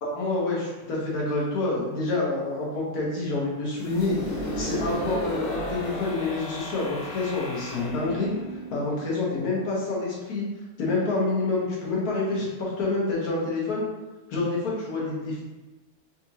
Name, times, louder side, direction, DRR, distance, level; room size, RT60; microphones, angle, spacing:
voice 1, 0.0-4.1 4.6-8.3 8.7-10.4 10.8-13.8 14.3-15.4, left 3 dB, 75° left, -5 dB, 1.6 m, -27 dB
sound 1, 3.8-9.5, equal, 45° left, 1.1 m, -34 dB
4.2 x 2.7 x 2.8 m, 1.1 s
omnidirectional pair, 1.6 m